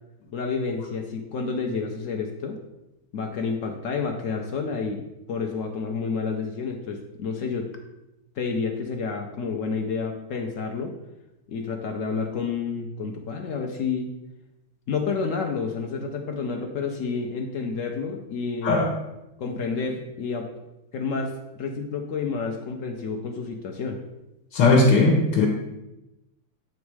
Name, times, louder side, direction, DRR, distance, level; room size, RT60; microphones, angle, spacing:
voice 1, 0.3-2.6 3.1-5.0 5.3-7.7 8.4-10.9 11.5-14.1 14.9-18.9 19.4-20.5 20.9-24.0, left 5 dB, 65° left, 3 dB, 0.8 m, -29 dB
voice 2, 24.5-25.5, left 3 dB, 80° left, 0 dB, 1.5 m, -18 dB
8.1 x 3.1 x 4.7 m, 0.95 s
omnidirectional pair, 1.9 m